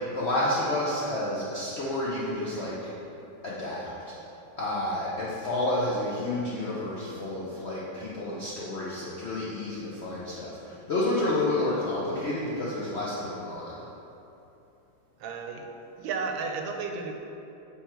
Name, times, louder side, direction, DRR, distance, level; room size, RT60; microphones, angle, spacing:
voice 1, 0.0-2.9 3.4-4.1 4.6-13.9, left 1 dB, 65° left, -8 dB, 0.6 m, -30 dB
voice 2, 15.2-15.7 16.0-17.1, right 4 dB, 80° right, 3 dB, 1.3 m, -33 dB
7.1 x 3.4 x 4.4 m, 2.9 s
omnidirectional pair, 2.1 m